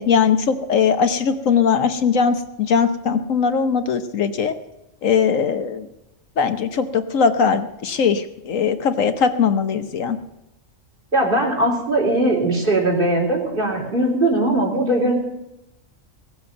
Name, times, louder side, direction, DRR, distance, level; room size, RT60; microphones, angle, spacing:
voice 1, 0.0-4.5 5.0-5.9 6.4-10.2, left 6 dB, 75° left, 9 dB, 1.3 m, -20 dB
voice 2, 11.1-15.1, right 1 dB, 40° right, -1 dB, 4.0 m, -20 dB
18.0 x 7.8 x 7.9 m, 0.93 s
omnidirectional pair, 1.4 m